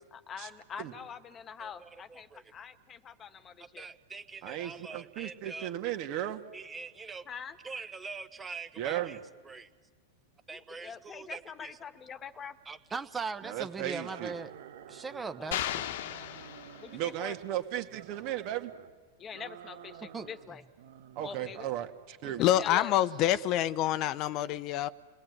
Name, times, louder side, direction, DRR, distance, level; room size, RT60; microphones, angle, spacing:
voice 1, 0.1-3.9 7.2-7.6 10.5-12.6 15.4-15.5 16.8-17.4 19.2-20.6 21.2-21.7 22.2-22.9, left 7 dB, 25° left, 12 dB, 1.4 m, -44 dB
voice 2, 1.6-2.4 3.7-5.7 6.5-7.2 7.6-9.2 9.4-9.7 10.5-11.7 12.7-14.5 14.9-15.8 20.1-20.3, right 4 dB, 15° right, 11 dB, 1.1 m, -41 dB
voice 3, 4.4-6.4 8.8-9.2 13.4-14.3 16.9-18.7 21.2-22.4, right 12 dB, 50° right, 7 dB, 2.1 m, -35 dB
sound 1, 13.9-15.6 16.0-17.5 17.8-18.9 19.3-20.5 20.8-21.5, right 9 dB, 70° right, 1.4 m, -50 dB
sound 2, 15.5-17.2, left 11 dB, 70° left, 1.2 m, -36 dB
voice 4, 22.4-24.9, left 12 dB, 45° left, 15 dB, 0.8 m, -27 dB
29.0 x 19.5 x 9.7 m, 1.5 s
hypercardioid pair, 115°, 0 cm